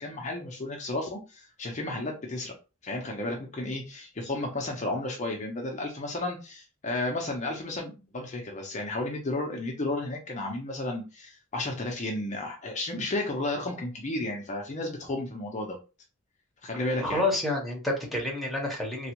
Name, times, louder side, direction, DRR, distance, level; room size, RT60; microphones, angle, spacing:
voice 1, 0.0-2.5 2.8-15.8 16.6-17.2, left 2 dB, 35° left, 0 dB, 0.6 m, -33 dB
voice 2, 17.0-19.1, left 2 dB, ahead, -2 dB, 1.0 m, -29 dB
3.3 x 2.3 x 2.9 m, 0.30 s
head